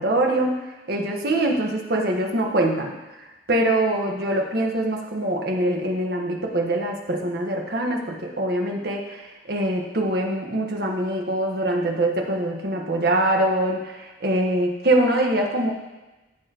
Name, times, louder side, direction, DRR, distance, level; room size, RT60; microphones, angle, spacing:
voice 1, 0.0-2.9 3.2-15.7, right 1 dB, 60° right, 1 dB, 1.4 m, -24 dB
15.0 x 7.4 x 3.0 m, 1.1 s
head